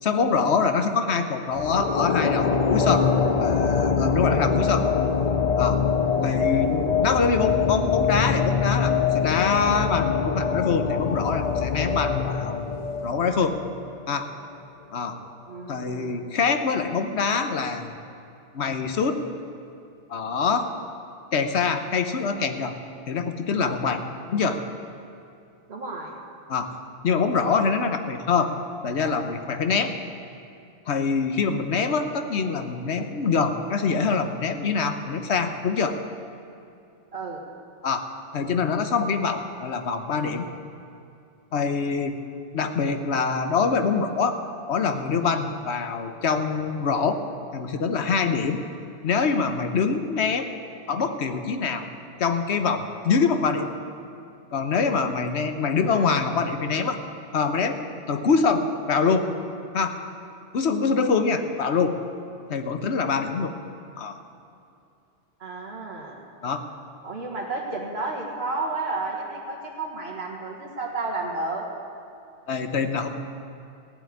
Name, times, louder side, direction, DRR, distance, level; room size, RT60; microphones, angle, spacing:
voice 1, 0.0-3.1 3.4-4.9 5.6-5.8 6.2-12.6 13.0-13.6 14.1-14.3 14.9-15.2 15.7-17.9 18.5-19.2 20.1-20.7 21.3-22.7 23.1-24.0 24.3-24.6 26.5-26.7 27.0-28.5 28.8-30.0 30.9-36.0 37.8-38.0 38.3-40.5 41.5-42.2 42.5-44.4 44.7-47.2 47.5-48.6 49.0-50.5 50.9-51.8 52.2-53.7 54.5-57.0 57.3-57.8 58.1-59.3 59.7-60.0 60.5-62.0 62.5-63.5 64.0-64.2 66.4-66.6 72.5-73.1, left 5 dB, 65° left, 8 dB, 1.2 m, -24 dB
sound 1, 1.5-14.1, left 6 dB, 45° left, 0.5 m, -24 dB
voice 2, 15.5-16.2 25.7-26.2 37.1-37.4 55.8-56.5 65.4-66.2 67.0-71.7, right 3 dB, 55° right, -2 dB, 2.0 m, -32 dB
15.0 x 7.8 x 9.7 m, 2.6 s
omnidirectional pair, 1.3 m